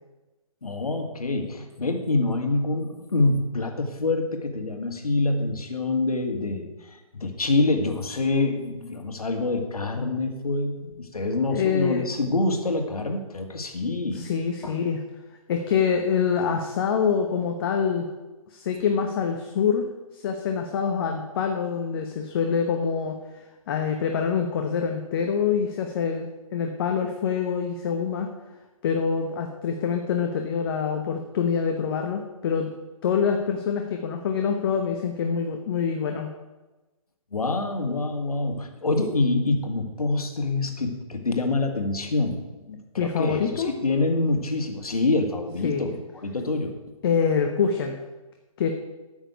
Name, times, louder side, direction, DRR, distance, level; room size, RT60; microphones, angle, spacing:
voice 1, 0.6-14.3 14.6-14.7 37.3-46.7, left 2 dB, 80° left, 5 dB, 2.0 m, -26 dB
voice 2, 11.5-12.1 14.1-15.0 15.5-18.1 18.5-19.9 20.1-23.2 23.7-28.3 28.8-32.7 33.0-36.3 43.0-43.7 45.6-45.8 47.0-48.0 48.6-48.7, left 6 dB, 40° left, 4 dB, 1.1 m, -25 dB
9.3 x 6.3 x 8.2 m, 1.1 s
hypercardioid pair, 145°, 19 cm